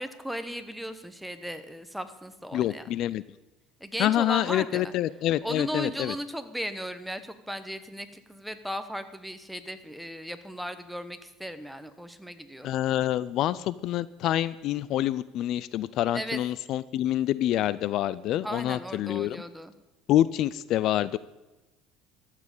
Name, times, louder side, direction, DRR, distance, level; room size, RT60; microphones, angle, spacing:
voice 1, 0.0-2.8 3.8-4.9 5.4-12.7 16.1-16.4 18.4-19.7, equal, ahead, 10 dB, 1.0 m, -36 dB
voice 2, 2.5-3.2 4.0-6.1 12.6-19.4 20.1-21.2, left 13 dB, 55° left, 18 dB, 0.4 m, -27 dB
13.0 x 7.4 x 8.3 m, 1.1 s
supercardioid pair, 120°, 0 cm